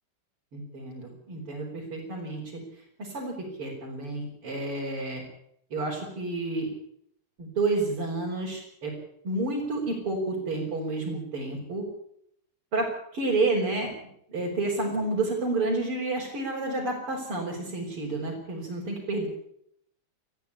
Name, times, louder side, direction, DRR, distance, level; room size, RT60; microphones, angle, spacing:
voice 1, 0.5-2.6 3.0-5.2 5.7-6.7 7.4-8.9 9.2-11.8 12.7-12.9 13.1-13.9 14.3-19.3, right 2 dB, 85° right, -4 dB, 5.8 m, -30 dB
20.5 x 14.5 x 10.0 m, 0.72 s
omnidirectional pair, 2.4 m